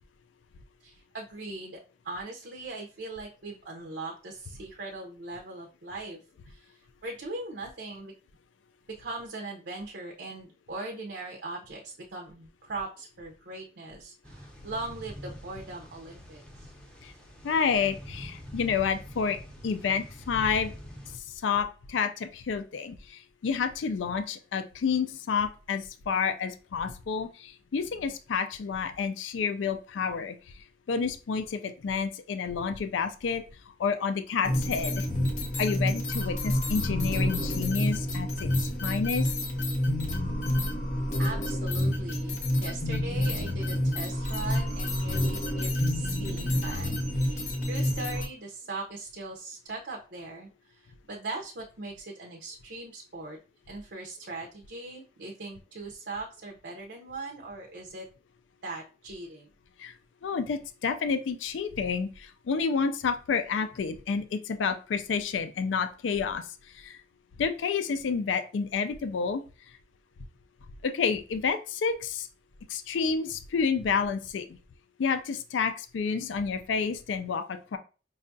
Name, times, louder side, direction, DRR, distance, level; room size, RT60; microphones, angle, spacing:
voice 1, 0.8-8.1 8.9-16.7 41.2-53.4 53.7-58.1 58.6-59.5, right 2 dB, 65° right, 1 dB, 0.6 m, -40 dB
sound 1, 14.2-21.2, equal, 5° left, 0.6 m, -44 dB
voice 2, 17.4-20.7 21.1-30.6 30.9-33.4 33.8-35.1 35.6-39.3 59.8-59.9 60.2-67.0 67.4-69.4 70.8-72.3 72.7-74.5 75.0-77.8, left 5 dB, 90° left, 9 dB, 0.4 m, -29 dB
sound 2, 34.4-48.3, left 1 dB, 40° left, 0.7 m, -28 dB
5.3 x 2.3 x 2.5 m, 0.35 s
head